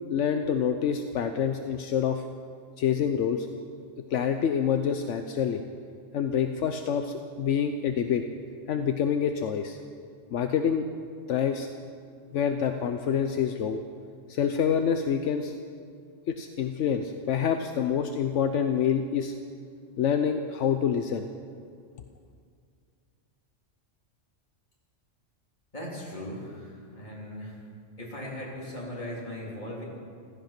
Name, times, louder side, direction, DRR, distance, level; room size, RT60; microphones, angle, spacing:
voice 1, 0.1-2.2 2.8-3.5 4.1-5.6 6.1-8.2 8.7-9.8 10.3-10.9 11.3-11.7 12.3-13.8 14.3-15.5 16.3-19.3 20.0-21.3, left 7 dB, 80° left, 6 dB, 1.1 m, -27 dB
voice 2, 25.7-27.6 28.0-29.8, left 1 dB, 40° left, -5 dB, 4.0 m, -38 dB
15.5 x 14.5 x 6.0 m, 2.2 s
omnidirectional pair, 1.2 m